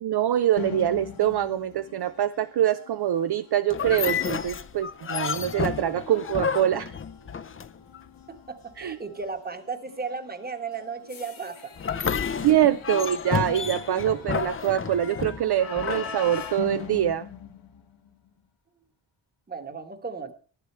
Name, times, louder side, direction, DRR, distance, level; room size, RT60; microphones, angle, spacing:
voice 1, 0.0-6.9 8.8-9.0 12.4-17.3, right 11 dB, 55° right, 11 dB, 0.5 m, -24 dB
sound 1, 0.6-18.3, left 7 dB, 80° left, 1.7 m, -43 dB
Saloon Door, 3.7-8.0 11.8-16.9, left 6 dB, 30° left, 0.5 m, -31 dB
voice 2, 8.3-11.7 14.0-14.3 19.5-20.3, right 5 dB, 20° right, 8 dB, 1.2 m, -35 dB
10.5 x 10.5 x 4.3 m, 0.40 s
wide cardioid pair, 120°, 47 cm